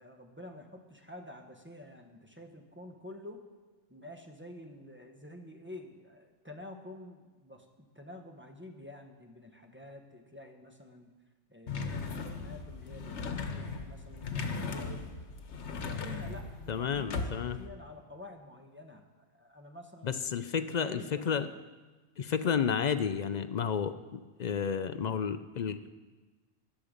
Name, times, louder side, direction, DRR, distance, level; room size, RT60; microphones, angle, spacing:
voice 1, 0.0-3.4 3.9-11.1 11.5-15.1 15.7-19.0 19.3-20.3 20.6-21.5, left 1 dB, 10° right, 3 dB, 1.0 m, -49 dB
sound 1, 11.7-17.7, left 4 dB, 80° left, 1.3 m, -38 dB
voice 2, 16.7-17.6 20.0-21.5 22.2-25.9, left 7 dB, 55° left, 11 dB, 0.5 m, -31 dB
13.0 x 10.0 x 5.1 m, 1.3 s
omnidirectional pair, 1.2 m